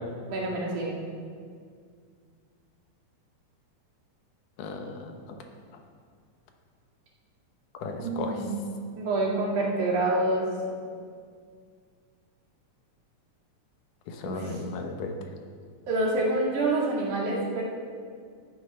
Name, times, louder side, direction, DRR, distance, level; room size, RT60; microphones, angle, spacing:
voice 1, 0.3-1.0 8.0-8.6 9.0-10.8 14.2-14.6 15.9-17.6, right 2 dB, 70° right, -4 dB, 3.7 m, -27 dB
voice 2, 4.6-5.4 7.7-8.4 14.1-15.1, left 4 dB, 80° left, 4 dB, 2.6 m, -35 dB
12.5 x 9.6 x 5.4 m, 2.1 s
omnidirectional pair, 3.6 m